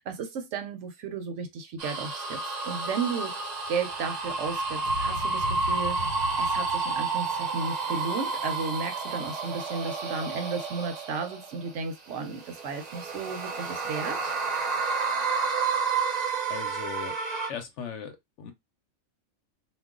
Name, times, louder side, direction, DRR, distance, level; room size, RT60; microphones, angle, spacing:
voice 1, 0.1-3.4 3.7-6.0 6.4-14.3, right 5 dB, 65° right, 0.9 m, -34 dB
sound 1, 1.8-11.7 12.2-17.5, right 4 dB, 40° right, 0.6 m, -30 dB
sound 2, 4.7-8.6, left 1 dB, 85° left, 1.1 m, -39 dB
voice 2, 16.4-17.2 17.5-18.5, left 7 dB, 65° left, 0.9 m, -38 dB
2.4 x 2.2 x 3.6 m
omnidirectional pair, 1.4 m